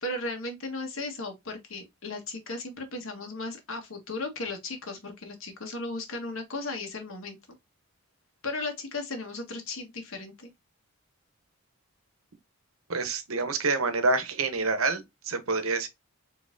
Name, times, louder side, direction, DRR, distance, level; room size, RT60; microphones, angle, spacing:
voice 1, 0.0-7.4 8.4-10.5, left 2 dB, 65° left, 1.5 m, -36 dB
voice 2, 12.9-15.9, right 3 dB, 75° right, 1.0 m, -27 dB
4.2 x 3.9 x 2.6 m
head